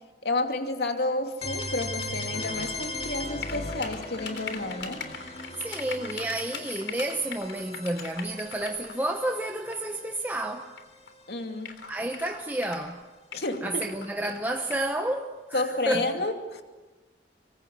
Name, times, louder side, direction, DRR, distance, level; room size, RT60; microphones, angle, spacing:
voice 1, 0.2-5.0 11.3-11.8 13.3-13.9 15.5-16.6, left 2 dB, 65° left, 2.6 m, -30 dB
sound 1, 1.4-11.1, left 2 dB, 35° left, 2.5 m, -38 dB
sound 2, 2.4-2.7 3.4-8.9 9.7-9.9 10.8-10.9 11.1-11.2 11.6-12.9 13.3-14.9, left 6 dB, 85° left, 3.5 m, -40 dB
voice 2, 5.6-10.7 11.9-13.0 13.6-16.1, right 1 dB, 10° right, 1.0 m, -30 dB
26.5 x 24.0 x 8.2 m
head